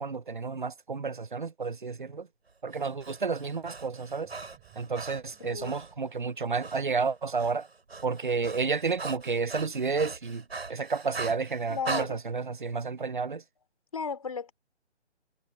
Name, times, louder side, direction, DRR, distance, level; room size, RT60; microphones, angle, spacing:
voice 1, 0.0-2.3 2.6-4.3 4.8-7.7 8.0-10.4 10.7-13.4, right 4 dB, 45° right, 0.6 m, -31 dB
Breathing, 2.7-5.9 6.6-6.8 7.1-12.1, right 3 dB, 60° right, 7.7 m, -40 dB
sound 1, 3.3-6.8, right 31 dB, 10° right, 7.3 m, -61 dB
voice 2, 5.4-5.8 11.7-12.2 13.9-14.5, left 6 dB, 30° left, 3.2 m, -35 dB
hypercardioid pair, 180°, 35 cm